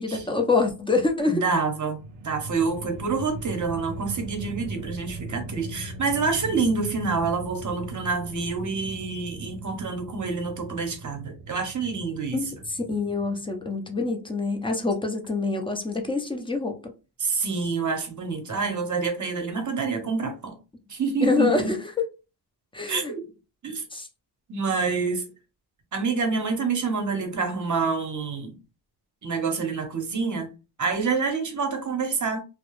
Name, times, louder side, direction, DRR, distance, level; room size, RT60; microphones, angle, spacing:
voice 1, 0.0-1.4 12.3-16.9 21.2-21.8 22.7-23.1 23.9-24.1, left 3 dB, 10° left, 0.6 m, -26 dB
voice 2, 1.3-2.0 2.2-12.4 17.2-20.6 20.9-21.7 22.9-23.3 23.6-23.8 24.5-25.3 25.9-28.6 29.2-30.5 30.8-32.4, right 4 dB, 40° right, 0.8 m, -27 dB
sound 1, 1.8-14.0, right 3 dB, 80° right, 0.5 m, -39 dB
2.3 x 2.0 x 3.0 m
cardioid pair, 80°, 44 cm